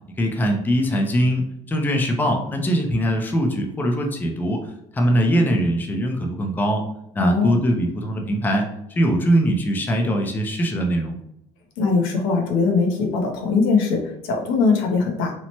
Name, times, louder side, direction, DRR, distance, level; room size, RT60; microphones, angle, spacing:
voice 1, 0.2-6.8 7.1-11.2, equal, 15° left, 2 dB, 0.4 m, -22 dB
voice 2, 7.2-7.6 11.8-15.3, left 4 dB, 80° left, 2 dB, 0.7 m, -21 dB
2.8 x 2.1 x 2.8 m, 0.77 s
cardioid pair, 115°, 15 cm